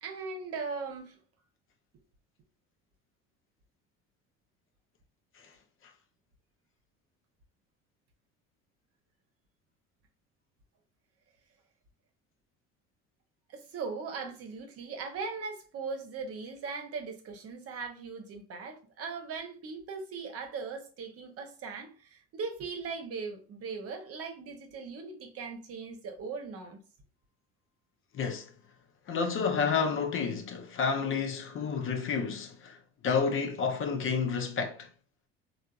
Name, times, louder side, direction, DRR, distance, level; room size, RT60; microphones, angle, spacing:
voice 1, 0.0-1.2 13.5-26.8, right 4 dB, 50° right, 0.9 m, -39 dB
voice 2, 28.1-28.5 29.1-32.8 33.0-34.9, left 5 dB, 45° left, 0.6 m, -30 dB
3.5 x 2.4 x 2.4 m
hypercardioid pair, 70°, 30 cm